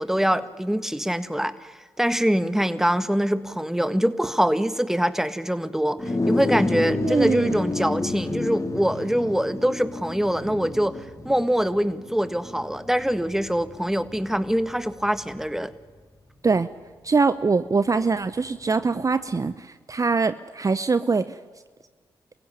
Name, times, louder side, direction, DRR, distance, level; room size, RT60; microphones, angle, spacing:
voice 1, 0.0-15.7, equal, 5° right, 13 dB, 1.5 m, -24 dB
sound 1, 6.0-15.6, left 2 dB, 35° left, 2.8 m, -30 dB
voice 2, 7.0-7.6 16.4-16.7 17.0-21.4, right 4 dB, 35° right, 13 dB, 0.7 m, -23 dB
24.0 x 16.0 x 10.0 m, 1.5 s
supercardioid pair, 45°, 10 cm